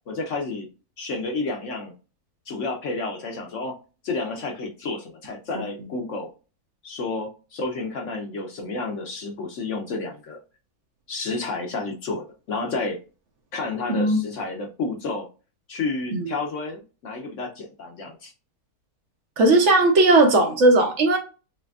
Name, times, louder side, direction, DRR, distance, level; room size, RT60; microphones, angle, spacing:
voice 1, 0.1-0.7 1.0-1.9 2.5-3.7 4.0-6.3 6.8-10.4 11.1-13.0 13.5-15.3 15.7-18.3, left 3 dB, 60° left, 1.0 m, -30 dB
voice 2, 13.9-14.2 16.1-16.4 19.4-21.2, right 2 dB, 60° right, 0.9 m, -17 dB
4.9 x 3.1 x 2.3 m
omnidirectional pair, 1.7 m